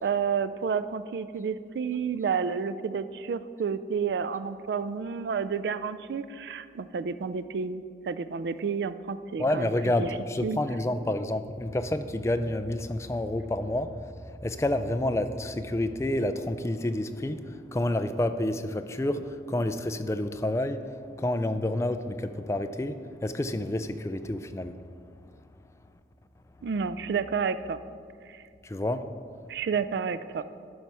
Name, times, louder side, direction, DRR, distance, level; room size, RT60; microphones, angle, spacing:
voice 1, 0.0-9.7 10.0-10.1 10.4-10.6 26.6-27.8 28.3-28.4 29.5-30.4, right 6 dB, 70° right, 13 dB, 0.3 m, -30 dB
sound 1, 3.1-16.0, right 1 dB, 5° right, 1.7 m, -48 dB
voice 2, 9.4-14.1 14.4-24.8 28.6-29.1, left 1 dB, 15° left, 9 dB, 0.3 m, -29 dB
12.0 x 5.5 x 4.7 m, 2.3 s
head